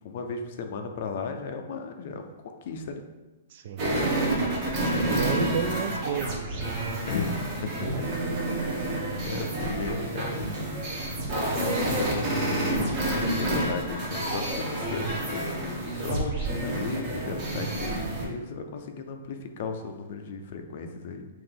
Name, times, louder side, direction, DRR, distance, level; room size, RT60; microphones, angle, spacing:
voice 1, 0.0-3.1 7.1-10.4 11.3-12.8 13.3-21.3, left 4 dB, 40° left, 5 dB, 0.4 m, -36 dB
voice 2, 3.5-3.8 4.9-6.8 7.9-8.0, right 6 dB, 40° right, 8 dB, 0.3 m, -31 dB
sound 1, 3.8-18.2, right 1 dB, 25° right, 1.0 m, -29 dB
5.7 x 2.6 x 3.4 m, 1.1 s
hypercardioid pair, 175°, 0 cm